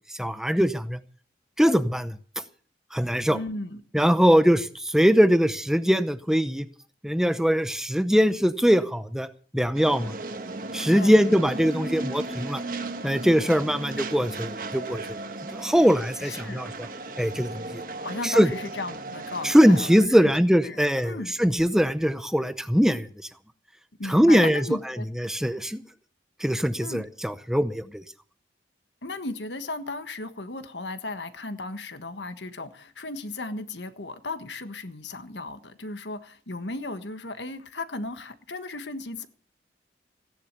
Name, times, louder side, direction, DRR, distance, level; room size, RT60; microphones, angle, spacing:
voice 1, 0.2-1.0 1.6-2.2 2.9-3.4 3.9-6.7 7.0-9.3 9.5-10.1 10.7-12.6 13.0-15.2 15.5-16.9 17.2-17.8 18.2-18.5 19.4-23.1 24.1-24.6 25.2-25.8 26.4-28.0, equal, 5° right, 12 dB, 0.7 m, -21 dB
voice 2, 3.3-3.8 10.9-11.2 16.2-16.6 18.0-20.2 20.6-21.3 24.0-25.0 26.8-27.0 29.0-39.3, left 2 dB, 85° left, 10 dB, 1.5 m, -35 dB
sound 1, 9.7-20.0, right 2 dB, 50° right, 1.4 m, -36 dB
16.5 x 10.5 x 6.8 m, 0.43 s
head